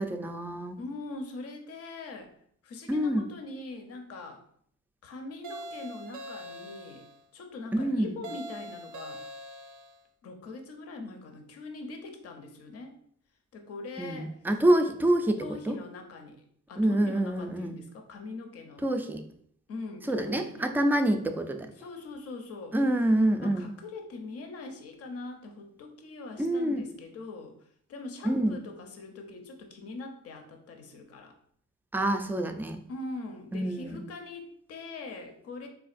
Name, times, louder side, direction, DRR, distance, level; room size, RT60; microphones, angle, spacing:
voice 1, 0.0-0.8 2.9-3.3 7.7-8.2 14.0-15.8 16.8-17.8 18.8-19.2 20.1-21.7 22.7-23.7 26.4-26.8 28.2-28.5 31.9-32.8 33.5-34.0, right 1 dB, 5° right, 5 dB, 0.3 m, -26 dB
voice 2, 0.8-2.3 2.6-4.4 5.0-7.1 7.3-9.3 10.2-13.0 13.5-14.4 15.4-16.4 16.7-18.9 19.7-20.7 21.8-22.8 23.4-31.4 32.9-35.7, left 3 dB, 50° left, 4 dB, 0.7 m, -42 dB
sound 1, 5.4-7.2 8.2-10.0, right 1 dB, 80° right, 0.5 m, -43 dB
4.3 x 2.4 x 2.4 m, 0.64 s
cardioid pair, 90°, 30 cm